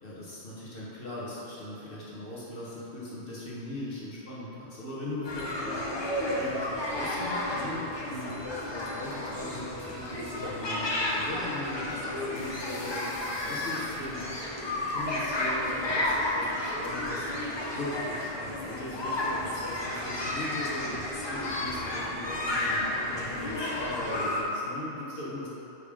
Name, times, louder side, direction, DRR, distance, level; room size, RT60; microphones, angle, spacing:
voice 1, 0.0-5.9 6.4-13.0 13.4-14.3 14.6-21.0 21.3-25.5, left 1 dB, 50° left, -8 dB, 1.5 m, -39 dB
sound 1, 5.2-24.4, left 1 dB, 30° left, 0.6 m, -32 dB
sound 2, 12.3-14.5, left 3 dB, 75° left, 1.0 m, -49 dB
5.2 x 4.6 x 5.1 m, 3.0 s
omnidirectional pair, 1.2 m